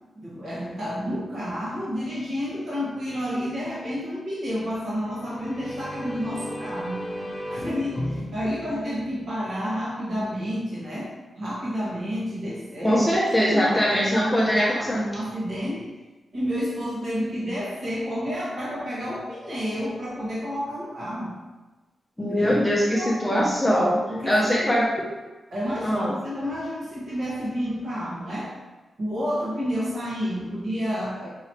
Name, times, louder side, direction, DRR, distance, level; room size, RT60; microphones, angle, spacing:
voice 1, 0.1-7.1 7.5-13.0 13.4-16.0 16.3-21.4 22.2-22.5 22.9-23.5 24.1-24.8 25.5-28.6 29.0-31.3, equal, 55° right, -8 dB, 1.3 m, -30 dB
sound 1, 4.9-9.6, equal, 30° left, 0.8 m, -35 dB
voice 2, 12.8-15.0 22.2-25.1 25.8-26.1, equal, 5° left, -5 dB, 0.6 m, -22 dB
4.8 x 3.0 x 2.8 m, 1.2 s
wide cardioid pair, 170°, 0 cm